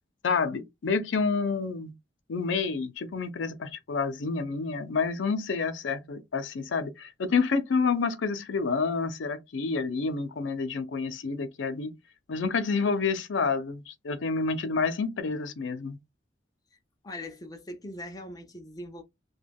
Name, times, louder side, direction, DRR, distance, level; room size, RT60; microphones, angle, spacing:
voice 1, 0.2-1.9 2.3-11.9 12.3-16.0, left 4 dB, 80° left, 0.5 m, -29 dB
voice 2, 17.0-19.0, left 1 dB, 20° left, 0.5 m, -41 dB
2.2 x 2.1 x 3.3 m
head